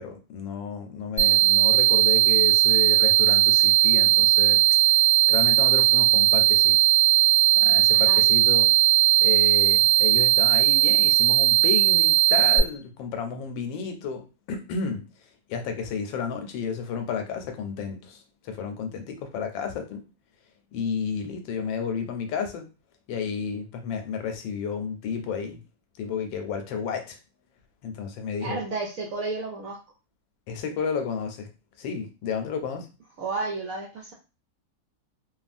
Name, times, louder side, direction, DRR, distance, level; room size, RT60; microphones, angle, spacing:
voice 1, 0.0-4.6 5.3-6.8 7.6-8.7 9.2-15.1 15.5-20.0 20.7-22.7 23.1-25.6 26.0-27.2 27.8-28.6 30.5-31.5 31.8-32.9, left 6 dB, 85° left, 6 dB, 1.3 m, -32 dB
sound 1, 1.2-12.6, right 13 dB, 25° left, 0.6 m, -18 dB
voice 2, 7.9-8.2 28.4-29.8 33.2-34.1, right 3 dB, 70° right, -1 dB, 0.8 m, -32 dB
3.1 x 2.3 x 2.5 m, 0.31 s
omnidirectional pair, 2.0 m